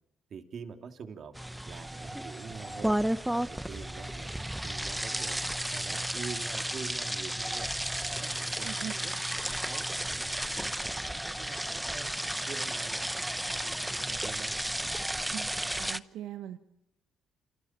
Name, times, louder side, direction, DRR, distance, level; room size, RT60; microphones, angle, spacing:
voice 1, 0.3-1.3 1.7-3.0 3.3-5.4 5.7-7.7 8.1-12.1 12.5-14.6, right 6 dB, 60° right, 5 dB, 2.8 m, -46 dB
sound 1, 1.3-16.0, right 1 dB, 5° right, 0.8 m, -33 dB
sound 2, 2.3-3.2 3.8-5.9 6.3-8.0 8.7-9.6 10.1-10.2 10.4-10.5 11.2-13.3 13.9-15.2, left 3 dB, 30° left, 2.5 m, -58 dB
voice 2, 8.6-9.0 15.3-16.6, right 11 dB, 90° right, 7 dB, 1.2 m, -41 dB
28.5 x 27.5 x 4.4 m, 0.82 s
cardioid pair, 90°, 0 cm